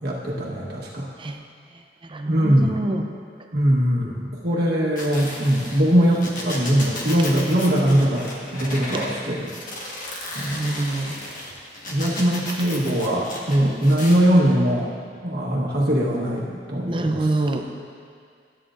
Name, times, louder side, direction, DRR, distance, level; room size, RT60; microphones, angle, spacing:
voice 1, 0.0-1.1 2.3-2.8 3.5-9.5 10.3-10.7 11.9-14.9 15.2-17.2, equal, 65° right, -4 dB, 1.3 m, -21 dB
voice 2, 2.0-3.1 8.9-9.1 10.5-11.2 16.8-17.7, right 2 dB, 30° right, 4 dB, 0.6 m, -26 dB
sound 1, 5.0-9.1 9.4-14.2, left 1 dB, 50° left, 1.4 m, -34 dB
13.0 x 8.9 x 2.5 m, 2.2 s
head